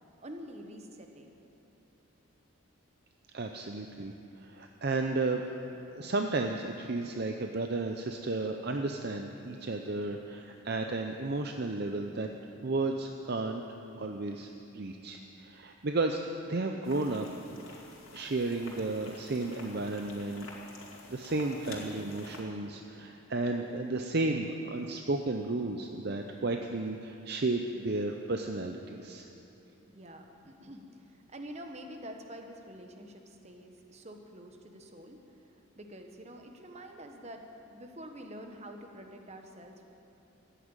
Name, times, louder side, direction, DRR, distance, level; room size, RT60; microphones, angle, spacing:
voice 1, 0.2-1.3 29.9-37.4 37.7-39.8, equal, 30° right, 4 dB, 1.2 m, -47 dB
voice 2, 3.3-4.1 4.4-5.4 5.9-12.3 12.6-13.6 14.0-17.3 18.1-20.5 21.1-29.3, right 2 dB, 50° right, 4 dB, 0.6 m, -33 dB
sound 1, 16.8-22.4, left 2 dB, 80° left, 2.8 m, -48 dB
14.5 x 10.0 x 9.0 m, 3.0 s
head